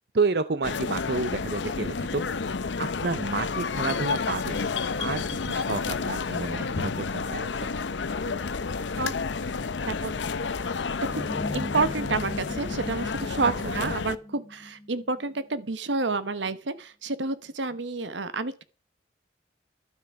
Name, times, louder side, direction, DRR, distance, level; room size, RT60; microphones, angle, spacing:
voice 1, 0.1-2.2 2.8-7.7 13.4-13.5 13.8-13.9, right 4 dB, 60° right, 0.6 m, -30 dB
sound 1, 0.6-14.2, left 4 dB, 85° left, 0.7 m, -30 dB
sound 2, 11.1-15.7, left 1 dB, 20° left, 0.8 m, -38 dB
voice 2, 11.5-18.6, right 3 dB, 85° right, 1.1 m, -29 dB
12.0 x 9.4 x 4.8 m
head